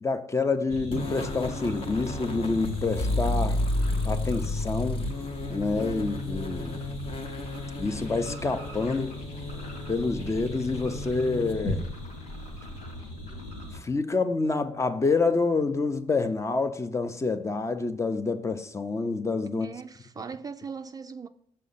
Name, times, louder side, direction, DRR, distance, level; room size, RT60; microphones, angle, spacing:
voice 1, 0.0-3.6 4.0-5.1 5.5-6.8 7.8-9.2 9.9-11.8 13.8-19.7, left 3 dB, 25° left, 0.6 m, -27 dB
sound 1, 0.7-13.8, left 1 dB, 80° left, 2.1 m, -39 dB
sound 2, 0.9-11.8, left 1 dB, 50° left, 0.9 m, -32 dB
voice 2, 19.5-21.3, right 5 dB, 30° right, 0.3 m, -39 dB
6.2 x 4.3 x 5.5 m
cardioid pair, 80°, 12 cm